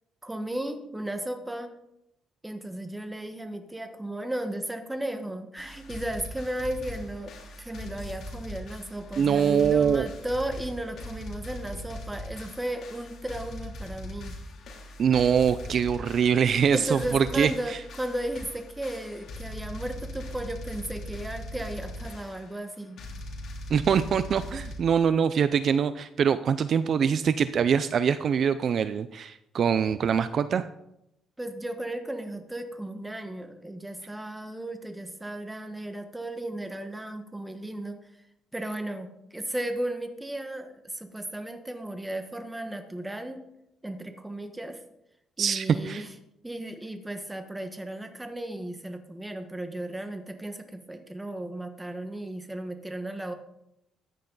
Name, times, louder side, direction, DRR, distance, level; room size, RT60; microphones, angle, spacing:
voice 1, 0.2-1.7 2.4-14.4 16.7-23.0 31.4-38.0 38.5-43.4 43.8-44.8 45.4-46.1 46.4-53.3, right 1 dB, 10° right, 7 dB, 1.4 m, -35 dB
sound 1, 5.6-24.8, left 1 dB, 60° left, 2.9 m, -40 dB
voice 2, 9.2-10.1 15.0-17.5 23.7-30.7 45.4-46.0, right 7 dB, 50° right, 13 dB, 0.5 m, -24 dB
14.0 x 10.0 x 4.0 m, 0.83 s
cardioid pair, 120°, 0 cm